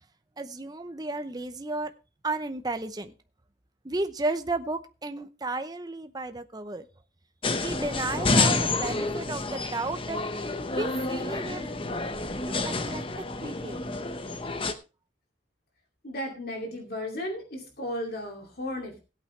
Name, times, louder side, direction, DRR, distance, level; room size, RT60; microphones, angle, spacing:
voice 1, 0.4-1.9 2.2-3.1 3.8-6.9 7.6-10.2 10.7-11.7 12.5-13.0 13.4-13.8, right 2 dB, 20° right, 9 dB, 0.7 m, -33 dB
sound 1, 7.4-14.7, left 3 dB, 30° left, 0.8 m, -29 dB
voice 2, 16.0-19.0, left 1 dB, 55° left, 1 dB, 2.6 m, -34 dB
16.5 x 8.8 x 3.3 m, 0.31 s
head